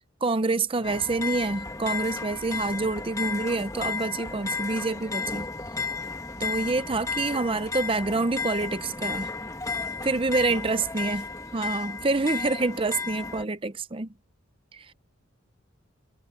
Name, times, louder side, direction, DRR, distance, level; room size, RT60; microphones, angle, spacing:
voice 1, 0.2-5.5 6.4-9.3 10.0-11.3 11.5-14.1 14.7-14.9, right 3 dB, 25° right, 0.6 m, -27 dB
voice 2, 0.8-1.1 2.6-3.0 6.4-6.9 10.5-10.9 12.5-12.8, left 2 dB, 60° left, 4.5 m, -48 dB
sound 1, 0.8-13.4, left 4 dB, 15° left, 1.6 m, -33 dB
head